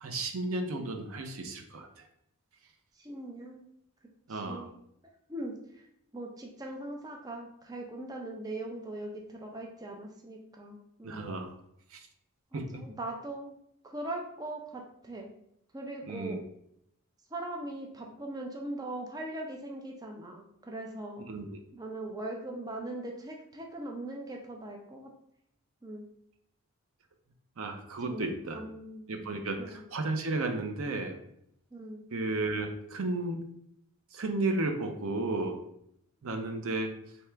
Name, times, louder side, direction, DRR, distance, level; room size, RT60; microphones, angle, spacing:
voice 1, 0.0-2.1 4.3-4.7 11.0-11.6 11.9-12.1 12.5-12.7 16.1-16.4 21.3-21.6 27.6-28.6 29.1-31.2 32.1-33.5 34.1-35.6 36.2-36.9, right 2 dB, 70° right, 5 dB, 0.6 m, -33 dB
voice 2, 3.0-3.6 4.3-4.8 5.3-5.9 6.1-11.3 12.5-13.5 13.8-15.3 15.7-16.4 17.3-21.2 21.7-25.1 25.8-26.0 28.1-29.1 29.6-29.8 31.7-32.1, right 1 dB, 15° right, 1 dB, 0.4 m, -40 dB
3.3 x 2.9 x 4.4 m, 0.74 s
head